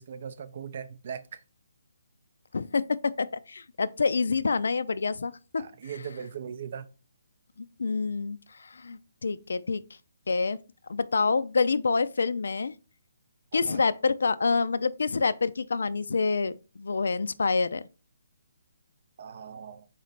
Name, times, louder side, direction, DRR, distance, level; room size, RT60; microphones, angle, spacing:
voice 1, 0.0-1.4 5.6-6.9 13.5-13.8 19.2-19.9, right 7 dB, 40° right, 0.4 m, -39 dB
voice 2, 2.5-6.1 7.8-9.8 10.3-10.6 10.9-12.8 13.5-17.8, left 4 dB, 75° left, 0.3 m, -27 dB
4.0 x 3.2 x 4.0 m
hypercardioid pair, 170°, 0 cm